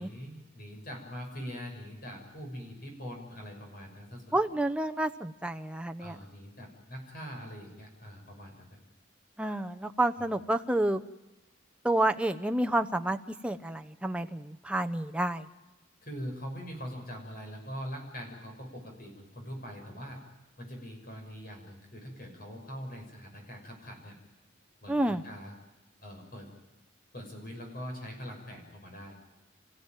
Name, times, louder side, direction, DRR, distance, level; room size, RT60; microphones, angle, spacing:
voice 1, 0.0-4.6 6.0-8.7 10.2-10.3 16.0-20.2 20.6-24.2 24.8-25.6 26.0-26.5 27.1-29.2, equal, 45° left, 2 dB, 6.2 m, -43 dB
voice 2, 4.3-6.2 9.4-11.0 11.8-13.2 13.4-15.4 24.9-25.2, right 1 dB, 5° right, 6 dB, 0.8 m, -29 dB
29.0 x 16.0 x 9.1 m, 1.1 s
head